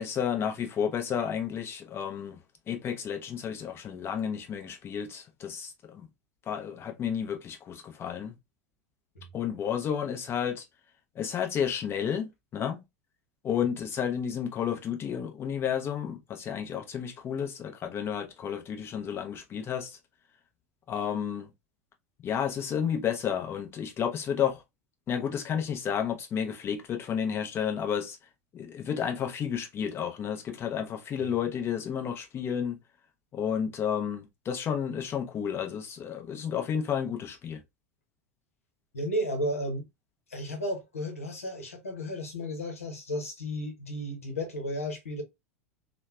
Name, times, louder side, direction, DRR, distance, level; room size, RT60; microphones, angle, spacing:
voice 1, 0.0-2.4 2.7-6.1 6.5-8.3 9.3-10.6 11.1-12.8 13.4-20.0 20.9-21.5 22.2-24.6 25.1-28.2 28.5-32.8 33.3-37.6, left 8 dB, 30° left, 0.8 m, -31 dB
voice 2, 38.9-39.9 40.3-45.2, equal, 80° left, 0.9 m, -33 dB
3.0 x 2.2 x 2.3 m
figure-of-eight pair, 85°, 8 cm